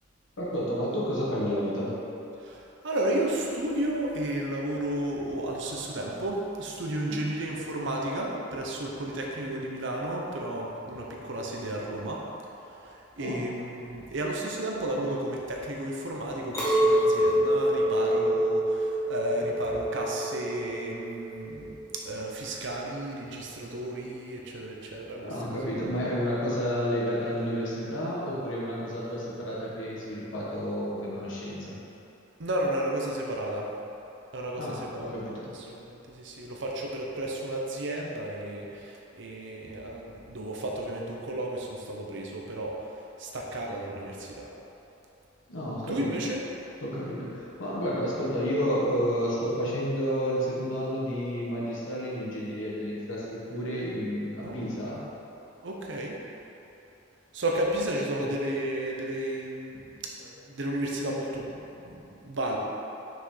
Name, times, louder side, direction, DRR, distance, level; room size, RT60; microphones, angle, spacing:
voice 1, 0.4-1.9 7.1-7.2 13.2-13.4 15.0-15.1 25.2-31.8 34.6-35.5 45.5-46.1 46.8-55.0 58.2-58.3, equal, 70° left, -6 dB, 1.4 m, -31 dB
voice 2, 2.4-12.2 12.6-21.8 22.0-25.7 32.4-33.7 34.3-44.5 45.9-46.4 54.4-54.9 55.6-56.1 57.3-62.6, right 1 dB, 70° right, -1 dB, 0.8 m, -33 dB
Chink clink, 16.5-21.9, right 1 dB, 15° left, 1.3 m, -26 dB
5.9 x 5.7 x 3.3 m, 2.9 s
head